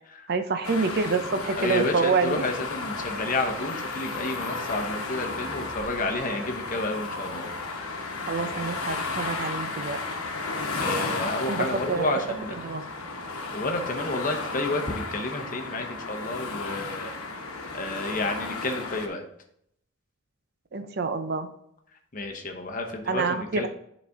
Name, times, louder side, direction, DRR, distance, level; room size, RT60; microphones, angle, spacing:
voice 1, 0.3-2.4 8.3-10.0 11.5-12.1 12.6-12.8 20.7-21.5 23.1-23.7, right 4 dB, 45° right, 9 dB, 0.5 m, -27 dB
sound 1, 0.6-19.1, left 3 dB, 90° left, 1.1 m, -33 dB
voice 2, 1.6-8.0 10.8-12.6 13.5-17.1 17.7-19.2 22.1-23.7, left 2 dB, 40° left, 3 dB, 0.9 m, -30 dB
9.8 x 4.1 x 3.5 m, 0.74 s
head